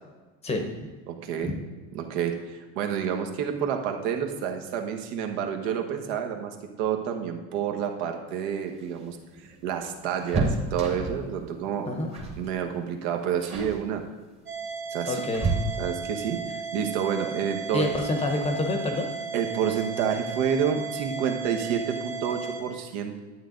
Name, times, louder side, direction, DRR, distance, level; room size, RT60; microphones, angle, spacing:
voice 1, 1.1-1.5 1.9-9.2 9.6-11.9 12.4-14.0 14.9-15.2 15.8-17.9 19.3-23.2, right 8 dB, 65° right, 4 dB, 1.2 m, -29 dB
sound 1, 8.6-11.3 12.1-12.5 12.7-13.0 13.4-13.8 14.6-16.1 17.8-17.9 18.3-18.4 19.6-20.0 20.3-20.4 20.7-20.9, right 3 dB, 15° right, 1.2 m, -31 dB
sound 2, 14.5-22.6, right 5 dB, 35° right, 1.9 m, -35 dB
voice 2, 15.1-15.5 17.7-19.1, left 2 dB, 20° left, 3 dB, 0.9 m, -27 dB
11.0 x 8.4 x 3.9 m, 1.3 s
cardioid pair, 170°, 34 cm